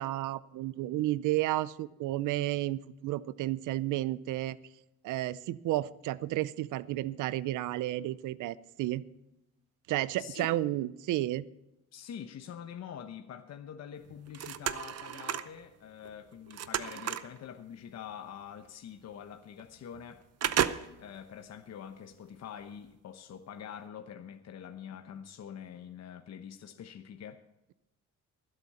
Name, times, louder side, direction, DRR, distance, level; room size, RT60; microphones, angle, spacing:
voice 1, 0.0-4.6 5.0-9.0 9.9-11.5, right 15 dB, 85° right, 0.6 m, -32 dB
voice 2, 10.2-10.6 11.9-20.2 21.0-27.4, left 8 dB, 60° left, 1.0 m, -45 dB
sound 1, 14.1-15.6 16.0-17.4 18.5-18.6 19.0-19.1 19.6-20.0 20.4-21.2 21.7-21.8, right 10 dB, 55° right, 0.8 m, -33 dB
24.0 x 8.0 x 4.3 m
cardioid pair, 90°, 30 cm